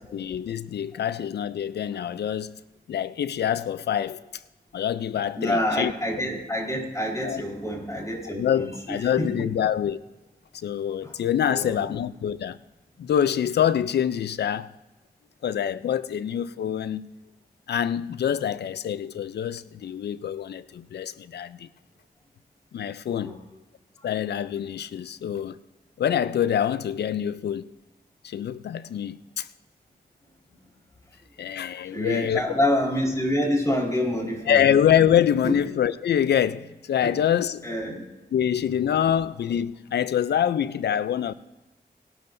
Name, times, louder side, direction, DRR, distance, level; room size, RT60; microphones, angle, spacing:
voice 1, 0.1-2.5 2.9-4.4 4.7-5.9 7.2-7.4 8.3-10.0 10.5-12.6 13.0-14.7 15.4-17.1 17.7-21.7 22.7-23.3 24.0-25.6 26.0-27.7 28.2-29.5 31.4-32.4 34.5-37.6 38.3-41.3, left 9 dB, 90° left, 0.5 m, -25 dB
voice 2, 5.3-9.3 11.0-11.1 11.5-11.9 23.2-23.4 31.9-34.6 35.4-35.6 37.6-38.0, left 1 dB, 20° left, 4.4 m, -27 dB
19.0 x 12.0 x 2.6 m
cardioid pair, 60°, 17 cm